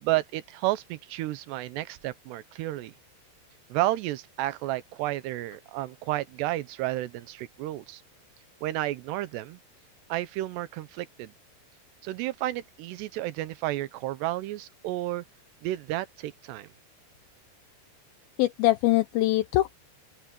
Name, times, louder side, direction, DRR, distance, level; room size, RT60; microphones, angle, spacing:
voice 1, 0.0-2.9 3.7-8.0 8.6-9.6 10.1-11.3 12.0-15.2 15.6-16.7, right 16 dB, 80° right, 3.0 m, -31 dB
voice 2, 18.4-19.8, left 16 dB, 85° left, 2.1 m, -23 dB
open air
omnidirectional pair, 4.9 m